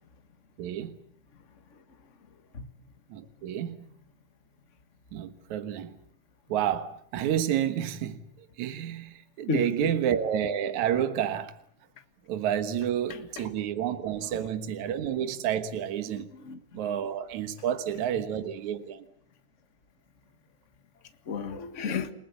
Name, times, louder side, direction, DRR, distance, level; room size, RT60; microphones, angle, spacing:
voice 1, 0.6-1.0 3.1-3.8 5.1-6.0 6.5-8.2 8.6-11.6 12.3-16.3 16.7-19.1, right 10 dB, 70° right, 2.7 m, -30 dB
voice 2, 9.5-9.9 13.4-13.5 14.3-14.5 16.1-16.6 21.3-22.1, left 4 dB, 35° left, 1.3 m, -33 dB
30.0 x 19.5 x 8.3 m
omnidirectional pair, 3.6 m